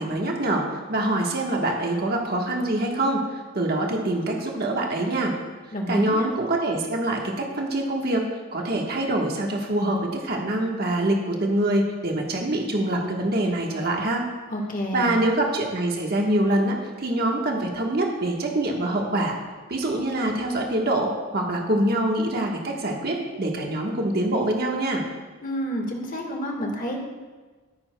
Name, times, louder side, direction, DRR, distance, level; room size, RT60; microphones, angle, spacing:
voice 1, 0.0-5.3 5.9-14.2 14.9-19.4 19.7-25.0, right 1 dB, 45° right, 0 dB, 1.2 m, -25 dB
voice 2, 5.7-6.3 14.5-15.1 25.4-27.0, equal, 40° left, 1 dB, 1.4 m, -29 dB
14.0 x 9.5 x 2.2 m, 1.4 s
head